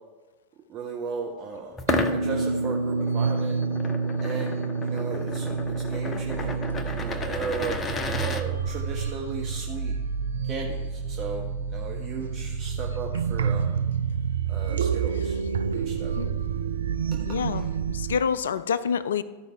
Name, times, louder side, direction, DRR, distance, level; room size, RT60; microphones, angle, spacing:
voice 1, 0.7-1.8 2.1-3.6 4.2-7.8 8.2-9.9 10.4-13.7 14.5-15.4 15.7-16.1 17.1-17.7, right 5 dB, 35° right, 0 dB, 1.1 m, -36 dB
sound 1, 1.8-8.4, left 3 dB, 20° left, 0.8 m, -33 dB
sound 2, 1.9-18.2, right 5 dB, 65° right, 0.4 m, -28 dB
voice 2, 16.0-16.3 17.3-19.2, left 7 dB, 65° left, 16 dB, 0.4 m, -28 dB
14.0 x 5.2 x 4.6 m, 1.3 s
figure-of-eight pair, 90°, 0 cm